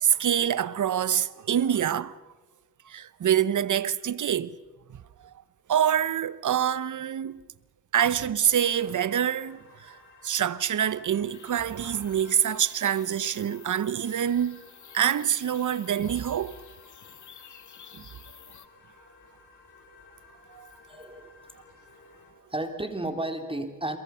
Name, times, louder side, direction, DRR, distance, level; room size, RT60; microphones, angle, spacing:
voice 1, 0.0-2.2 2.8-4.6 4.9-5.3 5.7-7.4 7.9-14.6 14.9-16.6 17.9-18.0 20.5-20.7, right 9 dB, 60° right, 1.0 m, -26 dB
sound 1, 8.6-22.3, left 3 dB, 80° left, 6.9 m, -56 dB
sound 2, 11.3-18.7, left 8 dB, 60° left, 1.7 m, -50 dB
voice 2, 20.9-21.4 21.7-21.8 22.5-24.0, right 1 dB, 15° right, 3.3 m, -33 dB
29.5 x 23.5 x 5.7 m
cardioid pair, 65°, 35 cm